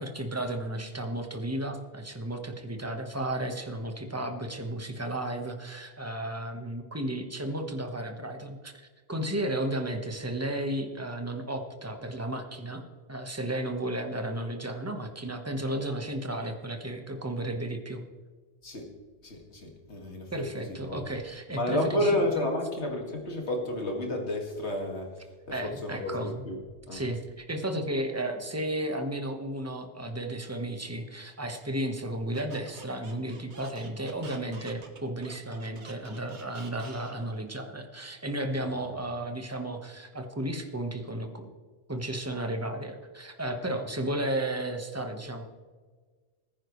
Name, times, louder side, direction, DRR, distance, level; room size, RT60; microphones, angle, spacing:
voice 1, 0.0-12.8 13.1-18.0 20.3-22.5 25.5-26.4 26.9-41.5 41.9-45.4, right 1 dB, 15° right, 5 dB, 1.2 m, -33 dB
voice 2, 19.2-21.0 21.5-25.1 25.5-26.6 26.9-27.0 38.6-39.0, left 1 dB, 65° left, 1 dB, 2.5 m, -31 dB
Squeak, 32.3-37.4, right 3 dB, 70° right, 1.7 m, -48 dB
20.0 x 9.8 x 3.2 m, 1.4 s
omnidirectional pair, 1.2 m